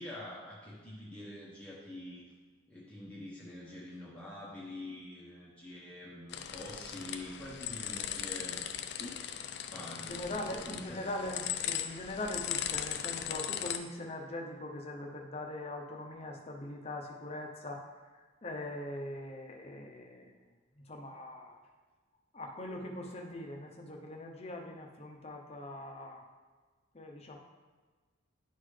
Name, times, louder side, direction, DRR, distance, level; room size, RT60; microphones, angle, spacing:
voice 1, 0.0-2.2 2.7-8.6 9.7-11.1, left 1 dB, 5° left, -7 dB, 1.0 m, -46 dB
sound 1, 6.3-13.8, left 10 dB, 55° left, 0.4 m, -38 dB
voice 2, 10.1-17.9 18.4-20.3 20.9-21.6 22.3-26.2 26.9-27.4, left 1 dB, 30° left, 1 dB, 0.8 m, -41 dB
11.0 x 3.9 x 3.3 m, 1.4 s
head